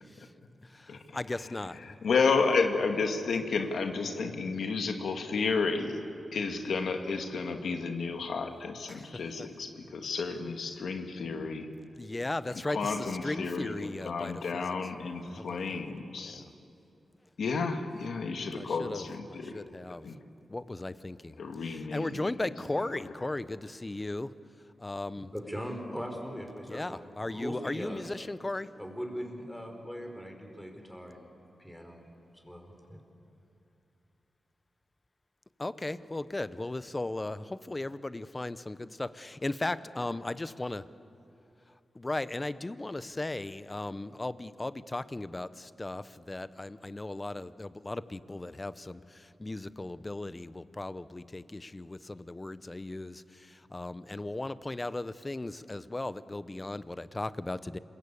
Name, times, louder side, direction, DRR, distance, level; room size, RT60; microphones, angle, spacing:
voice 1, 0.6-2.0 8.9-9.5 12.0-14.8 15.3-15.9 16.2-16.5 18.6-20.1 20.5-24.3 24.8-25.3 26.7-28.7 35.6-40.9 42.0-57.8, left 2 dB, 25° left, 15 dB, 0.8 m, -37 dB
voice 2, 2.0-11.7 12.7-16.4 17.4-19.6 20.0-20.2 21.4-22.1, left 4 dB, 80° left, 5 dB, 1.9 m, -31 dB
voice 3, 25.3-28.0 28.8-31.3 31.6-32.1 32.3-33.0, equal, ahead, 3 dB, 4.6 m, -40 dB
27.0 x 22.0 x 8.6 m, 2.7 s
cardioid pair, 80°, 0 cm